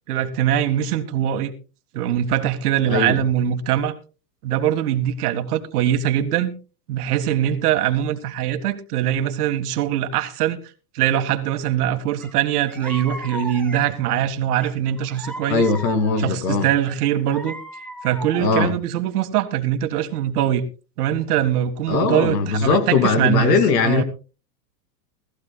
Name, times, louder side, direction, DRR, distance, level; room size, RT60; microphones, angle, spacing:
voice 1, 0.1-1.5 1.9-4.0 4.4-6.5 6.9-10.6 10.9-15.7 16.2-17.5 18.0-20.7 21.0-24.0, right 11 dB, 65° right, 1.8 m, -22 dB
voice 2, 2.9-3.2 15.5-16.7 18.4-18.7 21.9-24.0, left 5 dB, 80° left, 2.7 m, -20 dB
sound 1, 12.2-12.3 12.7-14.0 14.6-16.3 16.9-18.6, equal, 5° left, 2.0 m, -36 dB
20.0 x 14.5 x 2.3 m
supercardioid pair, 140°, 49 cm